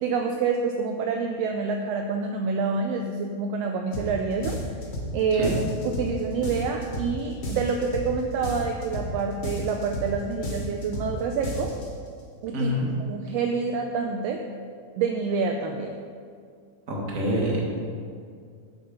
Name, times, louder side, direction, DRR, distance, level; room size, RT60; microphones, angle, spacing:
voice 1, 0.0-4.6 5.1-5.6 5.8-11.7 12.4-12.7 13.1-14.4 15.0-16.0, right 5 dB, 80° right, 3 dB, 1.5 m, -27 dB
sound 1, 3.9-4.1 4.4-5.1 5.4-6.1 6.4-7.1 7.4-8.1 8.4-9.1 9.4-10.1 10.4-11.1 11.4-11.9, left 1 dB, 40° left, 0.9 m, -32 dB
voice 2, 12.5-12.9 16.9-17.6, equal, 30° right, -3 dB, 1.8 m, -26 dB
9.1 x 7.7 x 5.5 m, 2.2 s
omnidirectional pair, 3.4 m